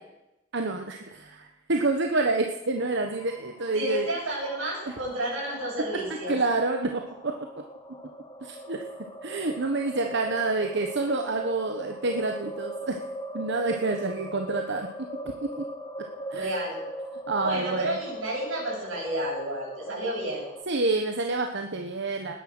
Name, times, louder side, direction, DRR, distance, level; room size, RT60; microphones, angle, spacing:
voice 1, 0.5-4.1 6.3-7.3 8.4-8.8 9.2-13.0 13.3-15.6 16.3-16.5 17.3-18.0 20.7-22.3, right 3 dB, 60° right, 4 dB, 1.3 m, -28 dB
sound 1, 2.8-20.6, equal, 20° left, 1.7 m, -40 dB
voice 2, 3.7-6.4 16.3-16.8 17.4-20.4, right 1 dB, 85° right, -8 dB, 7.8 m, -31 dB
19.5 x 10.5 x 6.2 m, 0.92 s
head